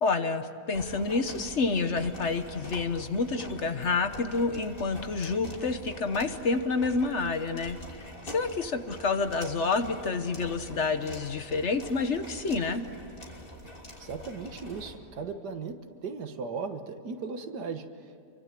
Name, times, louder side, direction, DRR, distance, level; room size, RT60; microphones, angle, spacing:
voice 1, 0.0-12.8, left 4 dB, 50° left, 9 dB, 1.3 m, -29 dB
sound 1, 0.7-15.0, left 1 dB, 35° left, 3.3 m, -45 dB
voice 2, 14.0-18.2, right 5 dB, 90° right, 7 dB, 2.0 m, -37 dB
27.5 x 24.0 x 7.6 m, 2.8 s
omnidirectional pair, 1.7 m